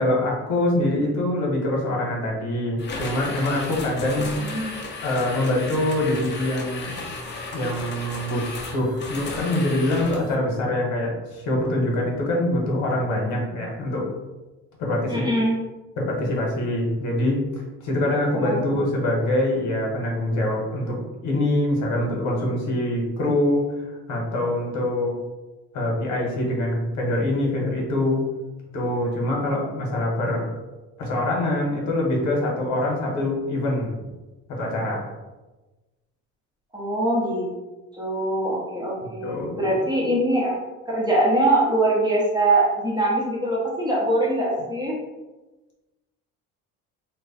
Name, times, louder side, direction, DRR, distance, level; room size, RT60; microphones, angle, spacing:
voice 1, 0.0-4.3 5.0-7.0 7.5-8.4 8.7-14.1 14.8-15.3 16.0-23.7 24.1-25.1 25.7-28.2 28.7-30.5 31.0-34.0 34.5-35.1 39.0-39.8, left 1 dB, 65° left, -1 dB, 1.1 m, -24 dB
sound 1, 2.8-10.4, left 3 dB, 35° left, 0.6 m, -34 dB
voice 2, 4.4-4.8 15.1-15.6 18.3-18.8 36.7-37.5 37.9-40.6 40.9-45.0, right 1 dB, 15° right, -5 dB, 0.8 m, -23 dB
3.0 x 2.2 x 4.0 m, 1.1 s
cardioid pair, 130°, 31 cm